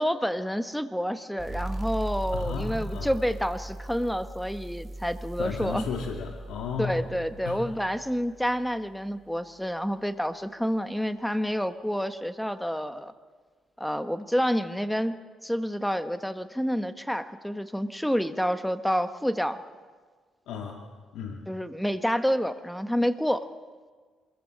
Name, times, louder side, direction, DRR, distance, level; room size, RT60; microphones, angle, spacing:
voice 1, 0.0-5.8 6.8-13.1 13.8-15.2 15.4-19.6 21.5-23.5, equal, ahead, 10 dB, 1.4 m, -28 dB
sound 1, 1.4-8.7, right 1 dB, 30° right, 4.1 m, -38 dB
voice 2, 2.3-3.1 5.4-7.1 7.4-7.7 20.5-20.8 21.1-21.4, left 5 dB, 85° left, 2 dB, 2.3 m, -34 dB
26.5 x 22.0 x 7.5 m, 1.5 s
cardioid pair, 90°, 0 cm